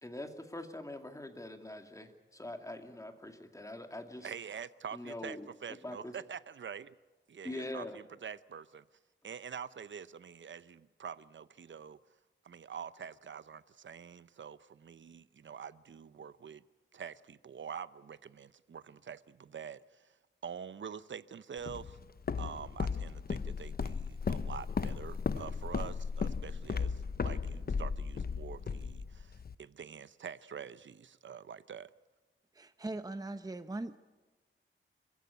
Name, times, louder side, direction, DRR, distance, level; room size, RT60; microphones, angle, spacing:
voice 1, 0.0-4.3 4.9-6.1 7.4-8.0, left 1 dB, 15° left, 2.4 m, -43 dB
voice 2, 4.2-6.9 7.3-8.8 9.2-12.0 12.4-16.6 16.9-20.1 20.4-22.0 22.4-31.9, right 7 dB, 65° right, 0.8 m, -46 dB
Walk footsteps, 21.7-29.5, left 5 dB, 45° left, 0.7 m, -36 dB
voice 3, 32.5-34.0, right 2 dB, 20° right, 0.8 m, -40 dB
25.5 x 15.5 x 9.5 m
wide cardioid pair, 90°, 21 cm